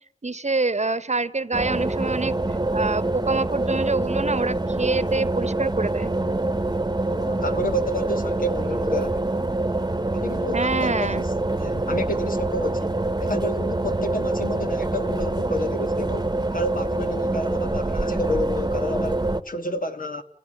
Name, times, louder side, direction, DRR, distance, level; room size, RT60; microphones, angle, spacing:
voice 1, 0.2-2.3 2.7-6.1 10.5-11.2, right 3 dB, 50° right, 1.0 m, -26 dB
sound 1, 1.5-19.4, right 2 dB, 30° right, 1.1 m, -25 dB
voice 2, 7.1-9.2 10.1-11.3 11.6-20.2, left 1 dB, 70° left, 1.7 m, -30 dB
27.5 x 16.5 x 9.9 m
wide cardioid pair, 45°, 15 cm